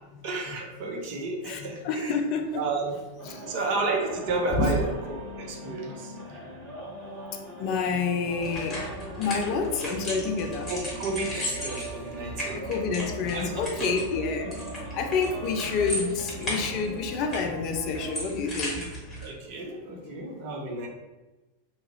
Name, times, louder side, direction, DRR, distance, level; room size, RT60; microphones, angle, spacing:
voice 1, 0.2-2.1 2.5-2.9 3.5-6.1 10.7-12.6 13.3-13.5 13.8-14.0 19.2-20.9, right 3 dB, 45° right, 1 dB, 0.6 m, -32 dB
voice 2, 1.4-2.6 3.3-3.5 4.5-4.9 5.6-6.0 6.3-6.5 7.3-10.7 12.5-18.9 20.0-20.2, left 4 dB, 40° left, 5 dB, 0.3 m, -29 dB
sound 1, 3.2-18.1, right 1 dB, 30° right, 1.3 m, -41 dB
sound 2, 8.4-19.3, equal, 15° left, 1.3 m, -36 dB
2.8 x 2.3 x 2.9 m, 1.1 s
figure-of-eight pair, 90°, 0 cm